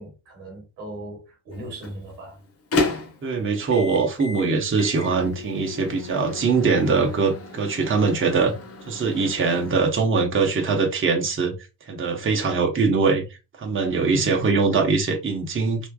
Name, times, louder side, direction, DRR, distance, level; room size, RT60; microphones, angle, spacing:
voice 1, 0.0-2.4 14.1-14.5, left 1 dB, 90° right, 1.2 m, -36 dB
Microwave oven, 1.5-9.7, left 3 dB, 30° left, 0.7 m, -33 dB
voice 2, 3.2-8.5 8.9-11.5 11.9-13.2 13.6-15.9, right 4 dB, 25° right, 0.9 m, -22 dB
3.3 x 2.1 x 2.2 m
hypercardioid pair, 50°, 50 cm